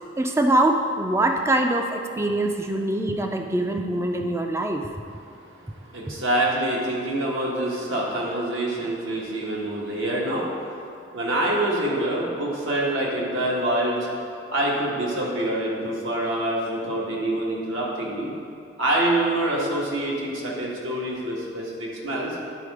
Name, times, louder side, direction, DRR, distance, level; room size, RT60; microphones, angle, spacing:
voice 1, 0.2-4.9, right 1 dB, 15° right, 4 dB, 0.4 m, -23 dB
voice 2, 5.8-10.8 11.1-14.1 14.5-18.3 18.8-22.4, right 1 dB, 75° right, -4 dB, 1.6 m, -26 dB
10.0 x 4.1 x 4.8 m, 2.5 s
head